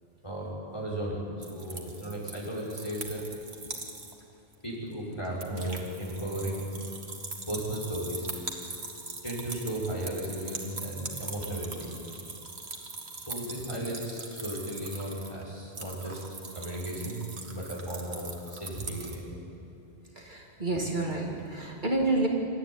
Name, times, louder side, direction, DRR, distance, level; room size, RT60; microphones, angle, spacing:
voice 1, 0.2-1.2 1.5-3.2 4.6-6.8 7.5-8.3 9.2-11.9 12.7-12.8 13.2-16.2 16.5-19.4, right 1 dB, 25° left, -5 dB, 5.6 m, -35 dB
sound 1, 1.4-4.2 4.5-4.6 4.9-19.2, right 3 dB, 80° right, 2.3 m, -41 dB
voice 2, 20.2-22.3, right 2 dB, 45° right, 0 dB, 2.5 m, -29 dB
26.5 x 13.5 x 9.6 m, 3.0 s
omnidirectional pair, 1.1 m